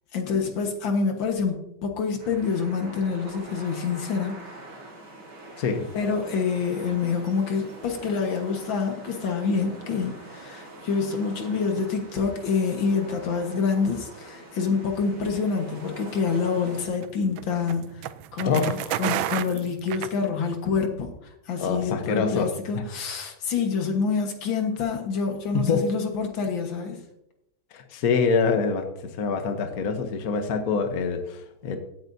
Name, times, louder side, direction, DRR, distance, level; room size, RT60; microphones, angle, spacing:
voice 1, 0.1-4.4 5.9-18.1 18.3-27.0, left 5 dB, 75° left, 4 dB, 2.2 m, -27 dB
sound 1, 2.2-16.9, right 2 dB, 60° right, 2.8 m, -44 dB
sound 2, 16.3-20.7, right 12 dB, 80° right, 1.3 m, -32 dB
voice 2, 18.4-18.9 21.6-22.9 25.5-25.8 27.7-31.8, left 5 dB, 55° left, 6 dB, 1.3 m, -25 dB
16.0 x 8.9 x 2.7 m, 0.80 s
omnidirectional pair, 2.2 m